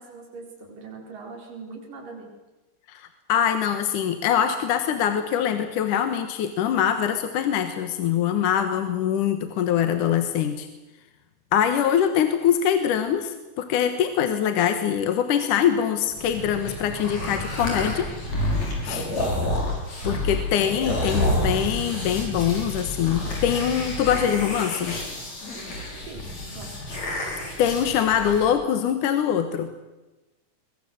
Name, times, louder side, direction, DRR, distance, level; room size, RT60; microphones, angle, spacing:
voice 1, 0.0-2.3 8.7-9.0 19.1-19.5 26.1-26.9, right 4 dB, 80° right, 1 dB, 6.5 m, -42 dB
voice 2, 2.9-10.7 11.5-18.1 18.8-19.1 20.0-25.0 27.2-27.3 27.6-29.7, left 9 dB, 75° left, 8 dB, 2.8 m, -23 dB
sound 1, 16.1-28.5, left 1 dB, 55° left, 6.8 m, -29 dB
22.5 x 22.5 x 7.9 m, 1.1 s
omnidirectional pair, 3.8 m